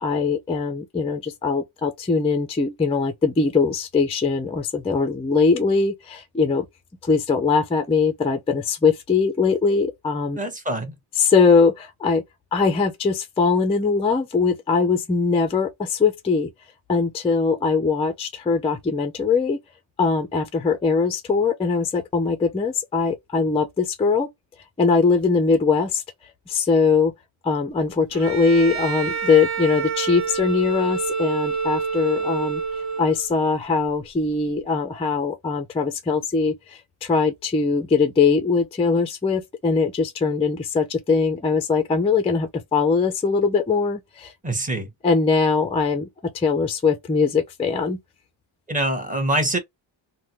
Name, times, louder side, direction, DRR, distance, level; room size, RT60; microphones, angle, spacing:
voice 1, 0.0-6.7 7.0-10.4 11.2-12.2 12.5-16.5 16.9-19.6 20.0-24.3 24.8-26.0 26.5-27.1 27.4-32.6 33.0-44.3 45.0-46.1 46.3-48.0, left 4 dB, 15° left, 0.4 m, -21 dB
voice 2, 10.4-10.9 44.4-44.9 48.7-49.6, right 1 dB, 15° right, 1.0 m, -24 dB
Bowed string instrument, 28.1-33.4, right 5 dB, 35° right, 1.1 m, -27 dB
3.4 x 2.1 x 2.8 m
cardioid pair, 150°, 48 cm